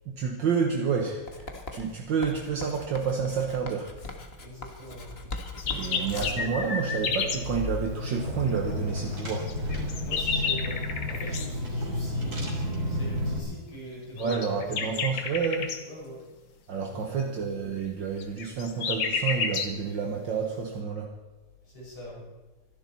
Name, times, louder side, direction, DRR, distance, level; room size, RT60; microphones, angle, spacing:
voice 1, 0.1-4.0 5.7-9.5 14.2-15.8 16.7-21.1, right 6 dB, 60° right, 2 dB, 1.9 m, -29 dB
Writing, 1.3-6.5, left 3 dB, 30° left, 1.6 m, -40 dB
voice 2, 4.4-5.2 5.5-7.1 10.0-10.8 11.1-15.0 15.8-16.2 16.8-17.4 21.6-22.2, equal, 85° left, -4 dB, 6.4 m, -43 dB
sound 1, 5.4-7.4 9.5-11.5 14.2-15.8 18.2-19.8, left 5 dB, 70° left, 2.2 m, -31 dB
Car / Engine, 6.2-13.4, left 1 dB, 45° right, 3.7 m, -32 dB
25.0 x 11.0 x 4.3 m, 1.2 s
omnidirectional pair, 2.3 m